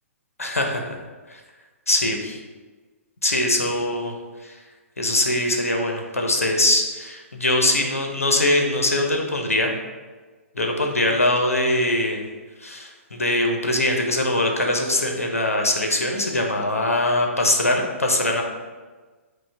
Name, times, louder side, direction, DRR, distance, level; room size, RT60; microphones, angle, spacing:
voice 1, 0.4-1.0 1.3-1.4 1.9-2.4 3.2-4.1 4.4-4.5 5.0-9.7 10.5-12.2 12.6-18.4, left 1 dB, 90° left, 2 dB, 0.5 m, -22 dB
4.9 x 2.0 x 3.3 m, 1.3 s
figure-of-eight pair, 120°, 8 cm